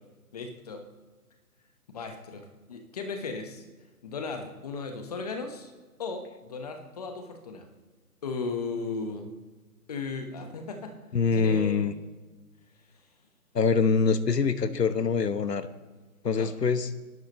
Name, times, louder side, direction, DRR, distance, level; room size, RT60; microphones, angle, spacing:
voice 1, 0.3-0.8 1.9-3.6 4.0-5.7 6.0-7.7 8.2-9.3 9.9-10.9 11.3-12.0 16.3-16.5, left 4 dB, 25° left, 5 dB, 1.3 m, -36 dB
voice 2, 11.1-11.9 13.5-15.7 16.2-16.9, left 5 dB, 90° left, 12 dB, 1.3 m, -24 dB
27.5 x 12.5 x 3.2 m, 1.3 s
hypercardioid pair, 160°, 47 cm